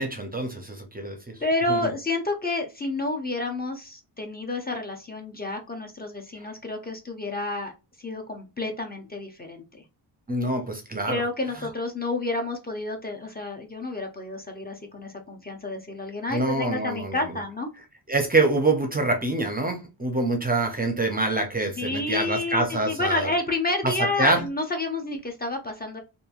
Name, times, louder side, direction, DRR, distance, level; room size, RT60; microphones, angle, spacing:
voice 1, 0.0-1.3 1.7-1.9 10.3-11.2 16.3-17.2 18.1-23.3 24.2-24.4, right 2 dB, 20° right, 0.5 m, -25 dB
voice 2, 1.4-7.7 8.0-9.8 11.1-17.7 21.8-26.0, left 2 dB, 20° left, 0.6 m, -30 dB
2.9 x 2.6 x 2.4 m
wide cardioid pair, 120°, 43 cm